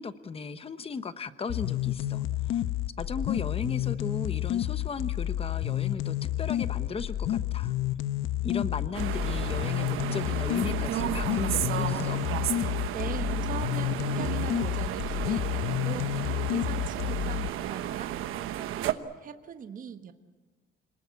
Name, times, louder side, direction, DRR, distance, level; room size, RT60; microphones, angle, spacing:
voice 1, 0.0-2.6 3.0-7.7 8.4-12.2, left 5 dB, 25° left, 12 dB, 1.0 m, -36 dB
sound 1, 1.5-17.5, left 13 dB, 75° left, 1.0 m, -30 dB
sound 2, 8.9-18.9, right 12 dB, 80° right, 1.1 m, -33 dB
voice 2, 12.5-18.1 18.6-20.1, right 7 dB, 40° right, 8 dB, 1.3 m, -41 dB
26.5 x 19.5 x 8.3 m, 1.3 s
cardioid pair, 140°, 21 cm